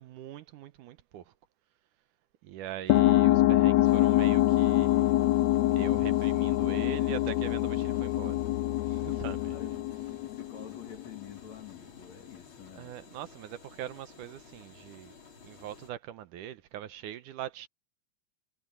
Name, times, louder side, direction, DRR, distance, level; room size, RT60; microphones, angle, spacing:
voice 1, 0.0-1.3 2.4-5.1 5.7-8.4 8.8-9.8 12.8-15.2 15.4-17.7, right 11 dB, 75° right, 2.3 m, -42 dB
sound 1, 2.9-11.0, left 15 dB, 75° left, 1.7 m, -25 dB
sound 2, 3.8-15.9, left 5 dB, 35° left, 4.8 m, -54 dB
voice 2, 9.5-12.9, left 7 dB, 55° left, 3.4 m, -49 dB
omnidirectional pair, 3.8 m